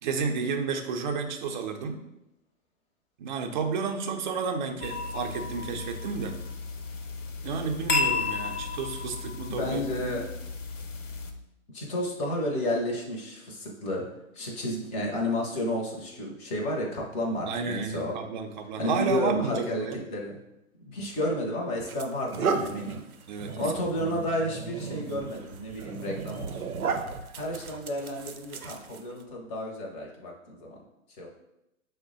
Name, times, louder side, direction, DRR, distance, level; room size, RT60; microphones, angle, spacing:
voice 1, 0.0-2.0 3.2-6.3 7.4-10.2 17.5-20.0 23.3-24.1, right 5 dB, 35° right, 4 dB, 0.5 m, -32 dB
sound 1, 4.8-11.3, left 4 dB, 60° left, 0.8 m, -33 dB
voice 2, 9.5-10.2 11.7-14.0 14.3-18.1 18.8-20.4 20.8-23.0 23.3-26.6 27.4-30.8 31.2-31.3, left 1 dB, 15° left, -1 dB, 0.7 m, -31 dB
sound 2, 21.1-21.2 21.8-29.2, right 5 dB, 90° right, 0.6 m, -35 dB
6.3 x 2.1 x 3.8 m, 0.86 s
figure-of-eight pair, 120°, 42 cm